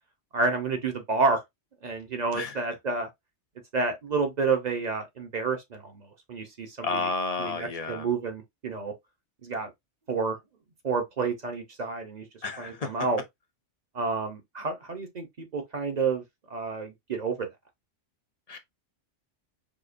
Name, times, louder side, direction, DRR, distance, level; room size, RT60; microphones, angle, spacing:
voice 1, 0.3-1.4 1.8-3.1 3.7-7.1 7.4-8.9 9.4-9.7 10.1-10.4 10.8-12.3 12.6-13.2 13.9-17.5, right 4 dB, 40° right, 0.8 m, -29 dB
voice 2, 6.8-8.1 12.4-12.9 18.5-18.6, left 3 dB, 50° left, 0.5 m, -31 dB
4.9 x 2.4 x 2.5 m
omnidirectional pair, 1.2 m